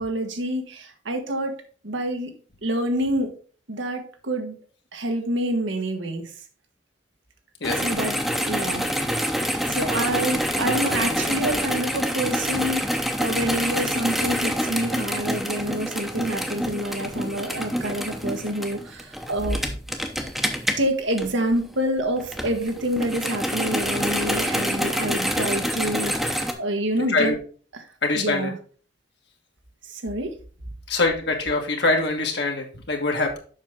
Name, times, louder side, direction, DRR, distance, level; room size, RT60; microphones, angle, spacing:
voice 1, 0.0-1.6 1.8-2.3 2.6-3.3 3.7-4.5 4.9-6.3 7.8-8.2 8.5-8.8 9.7-19.6 20.8-27.3 27.7-27.9 28.1-28.5 29.9-30.3, right 1 dB, 80° right, 5 dB, 1.4 m, -27 dB
sound 1, 7.6-21.7 22.2-26.5, equal, ahead, 0.8 m, -27 dB
voice 2, 28.0-28.5 30.9-33.4, left 3 dB, 65° left, 2 dB, 1.5 m, -23 dB
7.3 x 5.7 x 3.6 m, 0.40 s
head